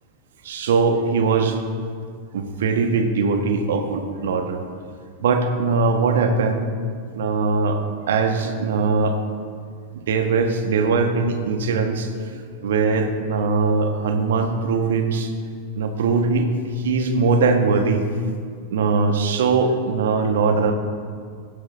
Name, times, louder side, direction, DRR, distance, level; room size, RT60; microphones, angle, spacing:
voice 1, 0.4-1.6 2.3-4.6 5.2-6.7 7.1-7.8 8.1-9.2 9.9-15.3 15.8-16.5 16.7-18.0 18.7-20.7, right 4 dB, 60° right, 6 dB, 1.6 m, -21 dB
17.5 x 15.0 x 3.7 m, 2.1 s
figure-of-eight pair, 90°, 0 cm